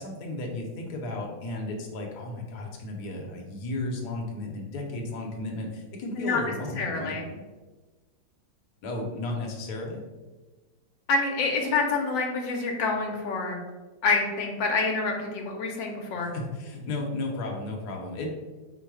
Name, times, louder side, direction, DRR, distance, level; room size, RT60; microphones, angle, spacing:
voice 1, 0.0-7.2 8.8-10.0 16.3-18.3, left 2 dB, 65° left, 0 dB, 1.3 m, -34 dB
voice 2, 6.8-7.3 11.1-13.6 14.0-16.3, left 3 dB, 85° left, 1 dB, 1.4 m, -27 dB
4.6 x 2.1 x 4.6 m, 1.2 s
omnidirectional pair, 2.0 m